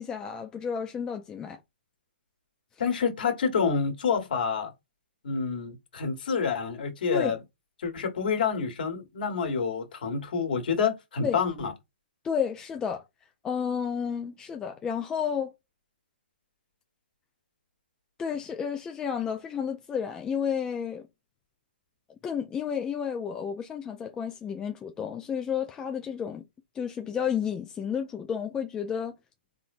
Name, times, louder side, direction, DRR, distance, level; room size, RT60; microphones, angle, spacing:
voice 1, 0.0-1.6 7.1-7.4 11.2-11.4 12.2-13.0 13.4-15.5 18.2-21.1 22.2-26.4 26.7-29.1, left 7 dB, 10° left, 0.5 m, -31 dB
voice 2, 2.8-4.7 5.2-7.4 7.8-11.7, left 6 dB, 55° left, 1.7 m, -28 dB
4.4 x 3.6 x 2.5 m
figure-of-eight pair, 130°, 6 cm